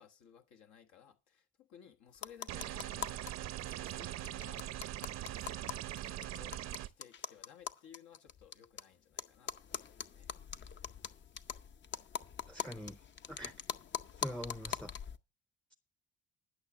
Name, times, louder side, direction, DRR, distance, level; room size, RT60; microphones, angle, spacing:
voice 1, 0.0-3.2 3.6-4.6 5.2-10.3, left 7 dB, 75° left, 1.3 m, -59 dB
sound 1, 2.1-3.3 3.6-3.7 3.9-4.0 4.2-8.8 9.2-15.2, left 8 dB, 40° left, 0.7 m, -42 dB
sound 2, 2.5-6.9, right 13 dB, 65° right, 0.7 m, -41 dB
voice 2, 12.5-13.0 13.3-13.5 14.2-14.9, equal, 5° left, 0.6 m, -43 dB
11.5 x 6.3 x 7.0 m
cardioid pair, 95°, 29 cm